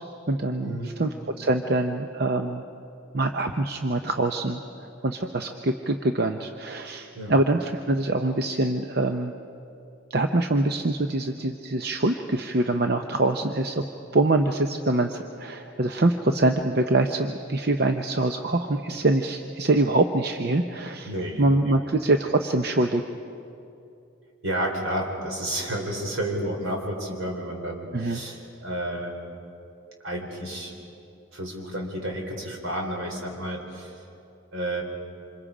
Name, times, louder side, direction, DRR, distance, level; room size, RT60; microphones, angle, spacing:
voice 1, 0.0-2.6 3.1-4.6 5.0-9.3 10.1-13.8 14.1-21.1 21.4-23.0 27.9-28.2, right 2 dB, 50° right, 5 dB, 0.7 m, -24 dB
voice 2, 0.6-0.9 7.1-7.3 21.0-21.4 24.4-29.1 30.0-30.7 31.3-33.9 34.5-34.8, right 1 dB, 80° right, 1 dB, 4.0 m, -31 dB
27.0 x 26.5 x 5.0 m, 2.7 s
head